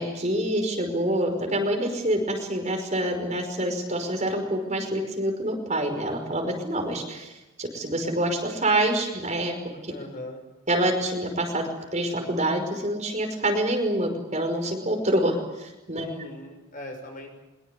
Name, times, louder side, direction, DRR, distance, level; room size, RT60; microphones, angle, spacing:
voice 1, 0.0-7.3 7.6-9.5 9.8-9.9 10.7-16.1, right 1 dB, 35° right, 4 dB, 5.4 m, -26 dB
voice 2, 9.9-10.4 16.0-17.4, left 1 dB, 40° left, 4 dB, 6.1 m, -39 dB
24.0 x 23.0 x 8.4 m, 1.1 s
head